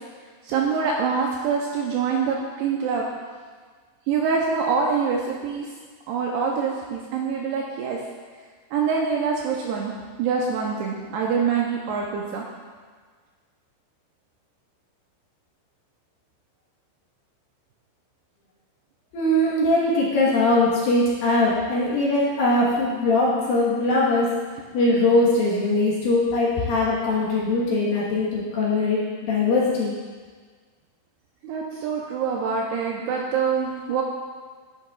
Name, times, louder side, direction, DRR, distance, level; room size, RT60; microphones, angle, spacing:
voice 1, 0.4-3.1 4.1-5.7 6.1-8.0 8.7-12.4 22.7-22.9 31.4-34.0, right 5 dB, 80° right, -1 dB, 2.4 m, -25 dB
voice 2, 19.1-24.3 24.7-29.9, left 2 dB, 65° left, -6 dB, 2.6 m, -21 dB
11.0 x 10.5 x 2.3 m, 1.5 s
omnidirectional pair, 5.3 m